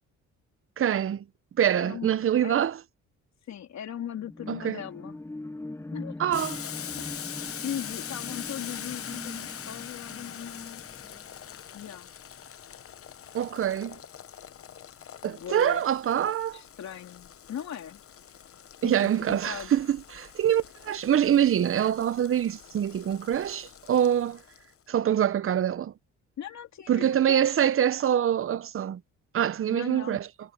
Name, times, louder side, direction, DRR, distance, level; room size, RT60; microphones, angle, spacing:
voice 1, 0.8-1.2 1.6-2.7 4.5-4.8 6.2-6.6 13.3-14.0 15.2-16.6 18.8-24.4 24.9-25.9 26.9-29.0 29.3-30.3, right 10 dB, 45° right, 0.8 m, -25 dB
voice 2, 1.7-2.6 3.5-5.2 5.9-6.2 7.0-7.3 7.6-10.8 11.7-12.1 15.2-15.8 16.5-18.0 18.8-19.7 26.4-27.6 29.7-30.2, left 9 dB, 65° left, 3.5 m, -39 dB
sound 1, 4.2-12.0 12.4-12.5, left 2 dB, 10° left, 1.1 m, -42 dB
Boiling, 6.3-24.7, left 9 dB, 50° left, 1.0 m, -43 dB
cardioid pair, 90°, 30 cm